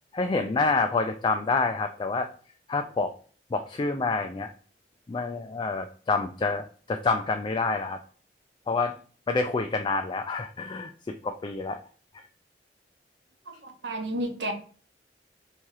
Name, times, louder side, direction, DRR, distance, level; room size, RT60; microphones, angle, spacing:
voice 1, 0.1-2.3 2.7-3.1 3.5-4.5 5.1-8.0 8.7-8.9 9.3-11.8, left 3 dB, 25° left, 6 dB, 0.3 m, -27 dB
voice 2, 13.5-14.5, right 1 dB, 80° right, 4 dB, 1.0 m, -32 dB
3.6 x 2.9 x 4.7 m, 0.42 s
head